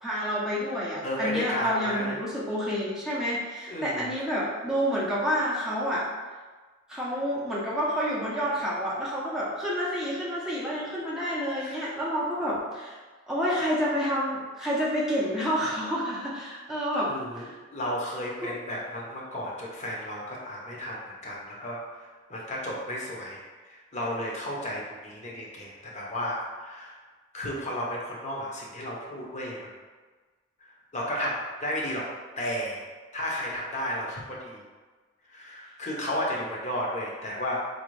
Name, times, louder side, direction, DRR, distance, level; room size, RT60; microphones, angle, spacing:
voice 1, 0.0-6.0 6.9-13.0 13.3-17.6 18.4-18.5, equal, 5° right, -8 dB, 0.5 m, -29 dB
voice 2, 1.0-2.2 3.7-4.1 11.6-11.9 17.1-27.0 27.3-29.6 30.9-32.1 32.4-32.8 33.1-34.6 35.3-37.6, equal, 35° left, -3 dB, 0.7 m, -33 dB
4.0 x 2.6 x 3.1 m, 1.4 s
head